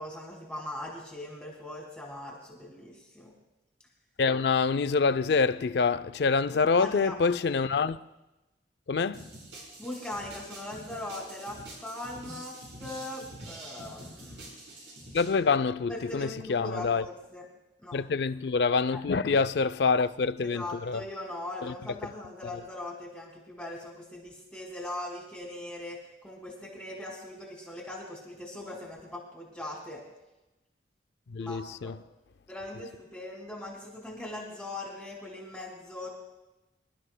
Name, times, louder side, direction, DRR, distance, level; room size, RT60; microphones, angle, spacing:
voice 1, 0.0-3.3 6.5-7.1 9.8-14.5 15.9-17.5 17.8-18.0 18.9-19.0 20.4-30.0 31.4-31.9 32.5-36.1, left 1 dB, 5° left, 2.2 m, -40 dB
voice 2, 4.2-8.0 8.9-9.3 15.1-17.1 17.9-21.0 21.6-21.7 22.4-22.5 31.3-32.0, left 4 dB, 65° left, 0.4 m, -26 dB
sound 1, 9.1-15.3, right 1 dB, 85° right, 4.6 m, -46 dB
25.5 x 12.0 x 2.2 m
head